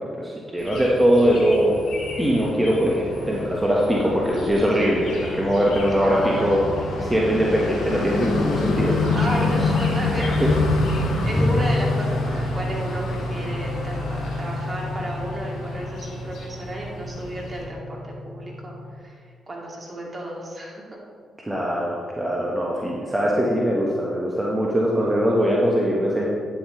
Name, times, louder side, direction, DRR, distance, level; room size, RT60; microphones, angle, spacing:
voice 1, 0.1-1.8 2.2-6.6 7.0-9.1 10.2-10.5 11.1-11.2 21.4-26.3, equal, 15° right, -3 dB, 1.5 m, -21 dB
sound 1, 0.6-17.6, left 3 dB, 65° left, 1.9 m, -28 dB
voice 2, 5.9-6.7 9.1-10.5 10.9-21.0, right 1 dB, 35° right, -2 dB, 2.6 m, -33 dB
sound 2, 11.3-19.0, left 2 dB, 35° left, 0.7 m, -30 dB
9.5 x 8.9 x 3.4 m, 2.2 s
hypercardioid pair, 45°, 0 cm